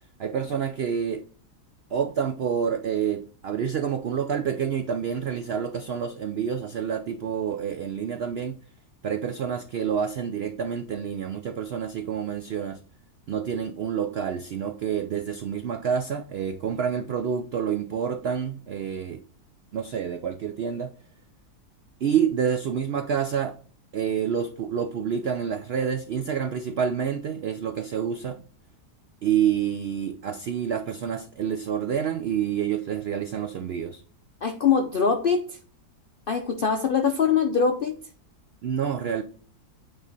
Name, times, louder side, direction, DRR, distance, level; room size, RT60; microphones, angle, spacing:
voice 1, 0.2-1.2 1.9-8.6 9.0-12.8 13.3-19.2 19.7-20.9 22.0-23.6 23.9-28.4 29.2-34.0 38.6-39.2, right 8 dB, 80° right, 0.5 m, -28 dB
voice 2, 34.4-35.6 36.3-37.9, left 6 dB, 70° left, 0.5 m, -23 dB
8.8 x 3.1 x 4.0 m
omnidirectional pair, 1.7 m